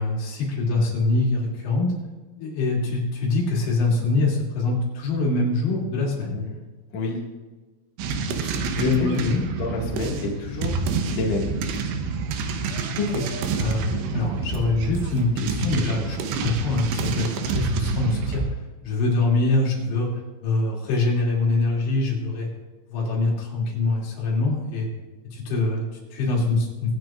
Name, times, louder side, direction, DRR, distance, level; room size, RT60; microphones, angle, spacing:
voice 1, 0.0-1.9 2.4-6.4 9.0-9.4 13.0-13.3 13.6-18.4 18.8-20.1 20.4-22.5 22.9-24.9 25.3-27.0, left 3 dB, 80° left, -3 dB, 5.0 m, -24 dB
voice 2, 6.3-6.6 6.9-7.2 8.4-11.6 13.9-14.2, left 4 dB, 50° left, -2 dB, 2.4 m, -28 dB
sound 1, 8.0-18.5, right 4 dB, 80° right, 3.1 m, -28 dB
24.5 x 9.3 x 2.5 m, 1.2 s
omnidirectional pair, 5.2 m